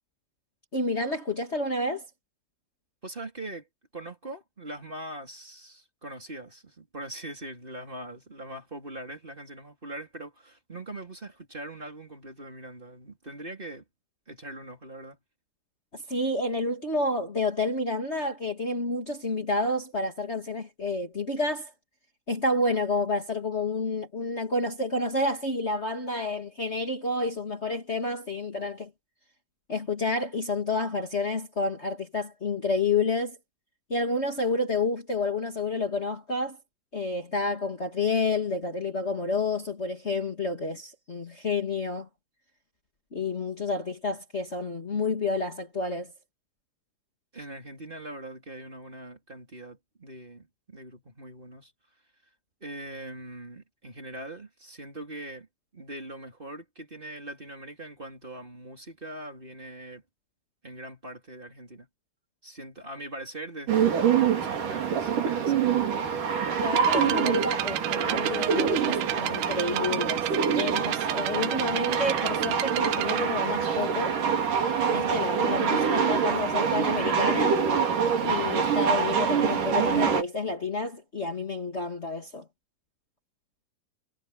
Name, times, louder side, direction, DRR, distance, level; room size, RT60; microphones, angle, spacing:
voice 1, 0.7-2.1 15.9-21.7 22.3-28.9 29.7-33.4 33.9-36.6 36.9-42.1 43.1-46.1 66.6-70.3 70.5-74.2 74.9-77.6 78.2-82.4, left 2 dB, 65° left, 0.6 m, -29 dB
voice 2, 3.0-3.7 3.9-13.8 14.3-15.2 47.3-51.7 52.6-55.5 55.7-60.0 60.6-61.9 62.4-65.6, right 1 dB, 10° right, 3.4 m, -42 dB
sound 1, 63.7-80.2, right 7 dB, 50° right, 4.2 m, -25 dB
sound 2, 66.7-73.2, right 16 dB, 80° right, 3.1 m, -32 dB
omnidirectional pair, 5.3 m